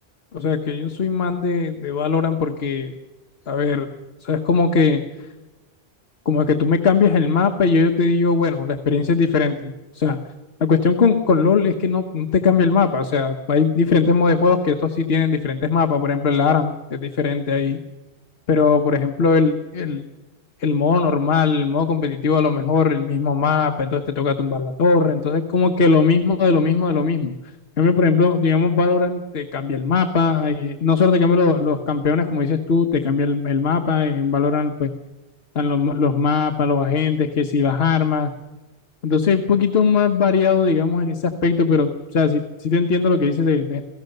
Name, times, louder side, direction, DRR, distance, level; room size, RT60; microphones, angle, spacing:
voice 1, 0.3-2.9 3.5-3.9 4.2-5.0 6.2-10.2 10.6-17.8 18.5-20.0 20.6-27.3 27.8-34.9 35.5-38.3 39.0-43.9, left 5 dB, 65° left, 6 dB, 1.3 m, -19 dB
27.5 x 17.5 x 6.6 m, 1.1 s
omnidirectional pair, 1.1 m